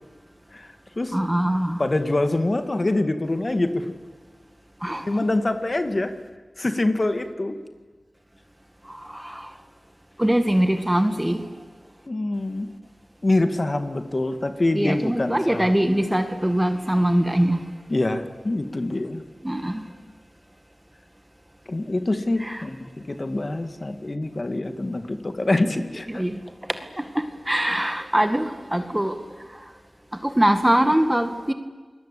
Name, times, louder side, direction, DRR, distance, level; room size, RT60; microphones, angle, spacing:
voice 1, 0.5-1.1 1.8-3.9 5.1-6.1 6.6-7.6 12.1-12.7 13.2-15.7 17.9-19.2 21.7-26.2, left 2 dB, 40° left, 8 dB, 2.1 m, -25 dB
voice 2, 1.1-1.8 4.8-5.3 8.9-9.5 10.2-11.5 14.8-17.7 19.4-19.8 22.4-22.7 26.1-26.4 26.7-29.7 30.1-31.5, right 1 dB, 10° right, 8 dB, 2.0 m, -23 dB
29.0 x 21.0 x 8.5 m, 1.4 s
wide cardioid pair, 55°, 0 cm